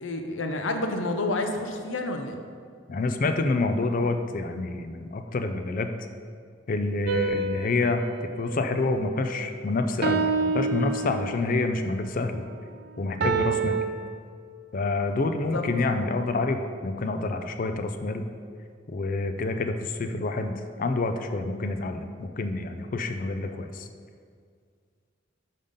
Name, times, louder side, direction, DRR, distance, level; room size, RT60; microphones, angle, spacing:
voice 1, 0.0-2.4 15.5-15.6, left 2 dB, 75° left, 5 dB, 0.7 m, -29 dB
voice 2, 2.9-5.9 6.7-8.0 8.4-12.5 13.0-13.8 14.7-18.3 18.9-23.9, left 3 dB, 45° left, 7 dB, 0.4 m, -28 dB
sound 1, 7.1-9.5 10.0-11.6 13.2-13.9, right 4 dB, 55° right, 0.5 m, -28 dB
5.5 x 5.5 x 5.1 m, 2.1 s
head